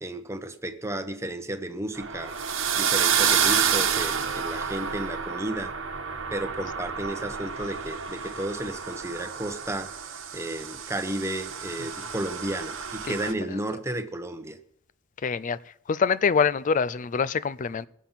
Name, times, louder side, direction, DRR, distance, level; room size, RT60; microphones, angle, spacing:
voice 1, 0.0-2.4 2.7-5.7 6.3-9.9 10.3-14.6, right 1 dB, 15° right, 1.0 m, -33 dB
sound 1, 1.9-13.3, right 7 dB, 75° right, 1.2 m, -29 dB
voice 2, 15.2-15.6 15.9-17.9, left 6 dB, 40° left, 0.4 m, -25 dB
20.5 x 7.3 x 5.7 m
head